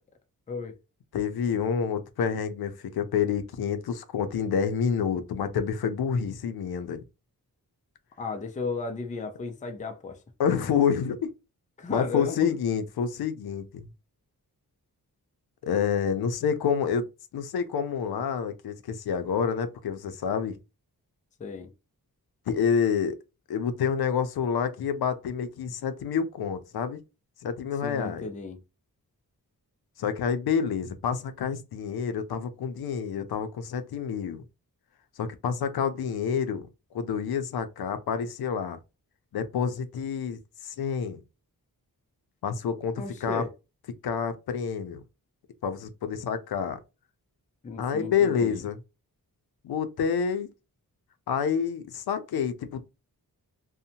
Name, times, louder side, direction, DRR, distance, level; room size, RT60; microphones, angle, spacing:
voice 1, 0.5-0.8 8.2-10.2 11.8-12.6 21.4-21.7 27.8-28.6 43.0-43.5 47.6-48.6, left 4 dB, 20° left, 0.3 m, -34 dB
voice 2, 1.1-7.0 10.4-11.3 11.9-13.9 15.6-17.1 17.3-20.6 22.5-23.2 23.5-27.0 27.4-28.3 30.0-34.4 35.2-36.7 36.9-38.8 39.3-41.2 42.4-43.4 44.0-45.0 45.6-46.8 47.8-48.8 49.6-50.5 51.3-52.8, left 7 dB, 90° left, 0.5 m, -28 dB
2.7 x 2.1 x 2.7 m
wide cardioid pair, 155°, 36 cm